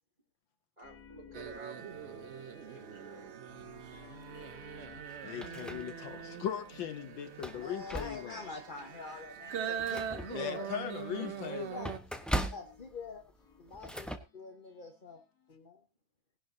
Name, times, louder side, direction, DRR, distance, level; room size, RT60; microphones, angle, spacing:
sound 1, 0.8-8.6 9.1-15.6, left 5 dB, 50° left, 2.1 m, -58 dB
voice 1, 0.8-2.3 2.6-3.3, right 3 dB, 20° right, 3.7 m, -51 dB
sound 2, 1.3-12.0, right 8 dB, 70° right, 0.6 m, -42 dB
sound 3, 5.0-6.3 6.7-6.8 7.3-8.5 9.0-9.1 9.5-14.2, right 1 dB, ahead, 0.7 m, -40 dB
voice 2, 5.2-8.4 10.3-11.9, left 9 dB, 70° left, 1.6 m, -39 dB
voice 3, 7.5-10.7 10.9-11.9 12.5-13.2 13.6-15.2 15.5-15.8, left 3 dB, 30° left, 1.1 m, -46 dB
19.0 x 11.5 x 2.8 m
omnidirectional pair, 2.2 m